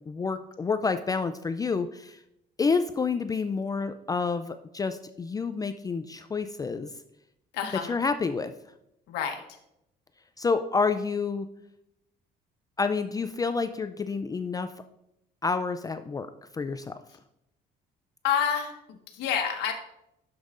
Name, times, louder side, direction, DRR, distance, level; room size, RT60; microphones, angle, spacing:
voice 1, 0.0-2.2 2.6-6.9 7.9-8.5 10.4-11.5 12.8-14.7 15.4-16.3 16.6-17.0, left 4 dB, 20° left, 9 dB, 0.4 m, -28 dB
voice 2, 7.5-7.9 9.1-9.4 18.2-19.7, left 8 dB, 90° left, 4 dB, 1.2 m, -28 dB
10.5 x 7.2 x 2.5 m, 0.81 s
cardioid pair, 110°, 17 cm